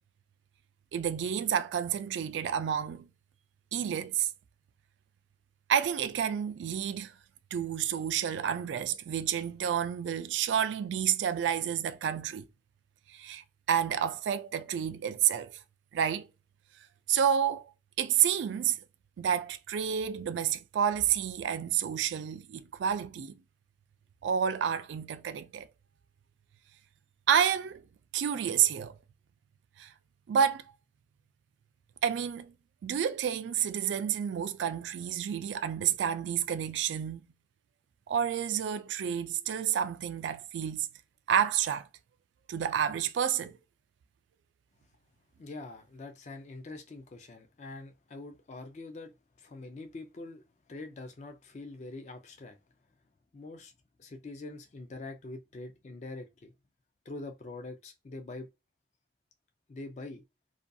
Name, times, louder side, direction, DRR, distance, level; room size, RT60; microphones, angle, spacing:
voice 1, 0.9-3.1 3.7-4.3 5.7-7.1 7.5-12.5 13.1-15.5 15.9-16.3 17.1-17.7 18.0-18.8 19.2-23.3 24.2-25.7 27.3-27.8 28.1-29.0 29.8-29.9 30.3-30.6 32.0-32.5 32.8-37.2 38.1-40.9 41.3-41.9 42.5-43.6, right 8 dB, 85° right, 0.3 m, -29 dB
voice 2, 45.4-50.4 50.7-52.6 53.3-53.7 54.0-56.5 57.1-58.5 59.7-60.2, left 2 dB, 40° left, 0.4 m, -44 dB
2.4 x 2.2 x 2.6 m
head